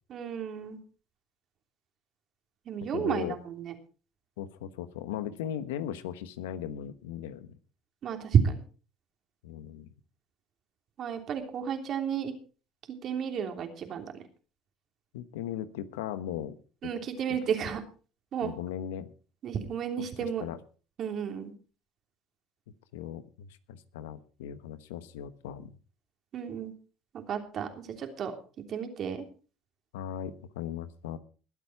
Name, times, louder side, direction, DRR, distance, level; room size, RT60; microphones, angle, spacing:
voice 1, 0.1-0.8 2.6-3.7 8.0-8.5 11.0-12.3 13.0-14.2 16.8-17.8 18.3-18.5 19.4-20.4 21.0-21.5 26.3-26.7 27.1-28.3 28.7-29.2, right 7 dB, 50° right, 5 dB, 3.2 m, -31 dB
voice 2, 2.9-3.4 4.4-7.5 9.4-9.9 15.1-16.6 16.8-16.9 18.4-19.1 20.2-20.6 22.9-25.7 29.9-31.2, left 10 dB, 90° left, 14 dB, 1.0 m, -38 dB
21.0 x 8.4 x 4.6 m, 0.38 s
supercardioid pair, 80°, 0 cm